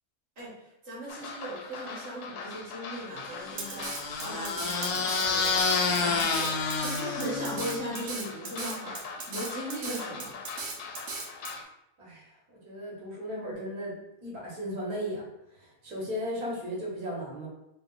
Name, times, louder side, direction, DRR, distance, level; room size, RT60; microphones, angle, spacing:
voice 1, 0.4-10.4, right 1 dB, 45° right, -7 dB, 1.6 m, -38 dB
sound 1, 1.1-11.6, left 5 dB, 85° left, 1.1 m, -42 dB
sound 2, 3.4-7.9, left 4 dB, 65° left, 0.8 m, -29 dB
Drum kit, 3.6-11.5, right 4 dB, 60° right, 0.9 m, -37 dB
voice 2, 12.0-15.3 15.5-17.5, equal, 85° right, -5 dB, 1.6 m, -36 dB
4.2 x 2.0 x 3.7 m, 0.82 s
omnidirectional pair, 1.6 m